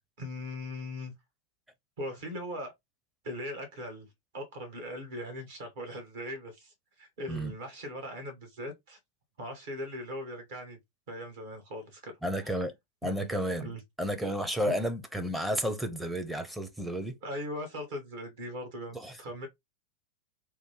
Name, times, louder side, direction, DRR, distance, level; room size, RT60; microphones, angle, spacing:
voice 1, 0.2-1.1 2.0-2.7 3.2-4.1 4.3-9.0 9.4-10.8 11.1-12.1 12.4-12.5 13.0-13.3 13.6-13.8 14.6-14.8 17.2-19.5, left 1 dB, 55° right, 1.4 m, -39 dB
voice 2, 12.2-12.7 13.0-13.7 14.0-17.2 18.9-19.2, equal, 5° right, 0.6 m, -32 dB
3.2 x 2.3 x 3.2 m
figure-of-eight pair, 90°, 0 cm